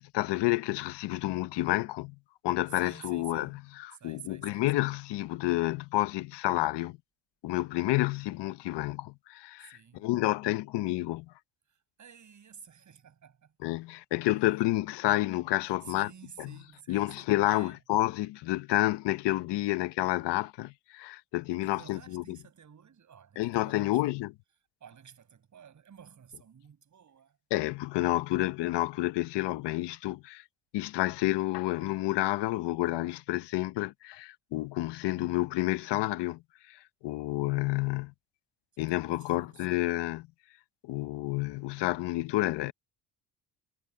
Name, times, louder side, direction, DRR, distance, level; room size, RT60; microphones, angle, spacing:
voice 1, 0.0-2.2 2.4-7.0 7.4-11.3 13.6-16.1 16.4-16.5 16.9-22.2 23.4-24.3 27.5-30.4 30.7-36.4 36.7-38.1 38.8-40.3 40.8-42.7, left 17 dB, 85° left, 1.1 m, -30 dB
voice 2, 2.7-3.6 4.0-4.9 9.6-10.1 11.7-13.7 15.6-17.8 21.6-24.0 24.8-27.4 38.9-40.0, right 8 dB, 45° right, 6.6 m, -52 dB
cardioid pair, 100°, 41 cm